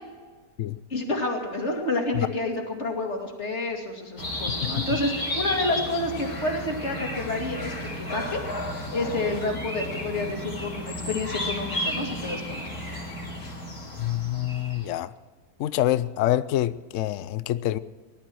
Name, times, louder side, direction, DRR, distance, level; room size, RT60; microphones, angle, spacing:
voice 1, 0.9-8.4 8.9-12.6, left 2 dB, 45° left, 2 dB, 2.8 m, -29 dB
sound 1, 4.2-14.9, left 1 dB, 85° left, 4.1 m, -33 dB
voice 2, 14.0-15.1 15.6-17.8, left 13 dB, 65° left, 16 dB, 0.8 m, -26 dB
18.5 x 12.0 x 6.2 m, 1.5 s
omnidirectional pair, 1.6 m